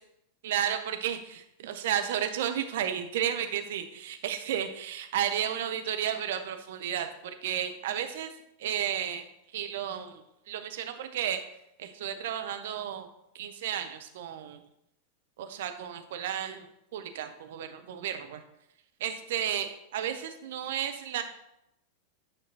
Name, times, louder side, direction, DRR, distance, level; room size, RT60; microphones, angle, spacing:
voice 1, 0.4-8.3 8.6-9.3 9.5-11.4 11.8-13.1 13.3-14.6 15.4-18.4 19.0-21.2, right 9 dB, 55° right, 7 dB, 0.6 m, -33 dB
9.0 x 5.3 x 2.8 m, 0.82 s
figure-of-eight pair, 90°, 0 cm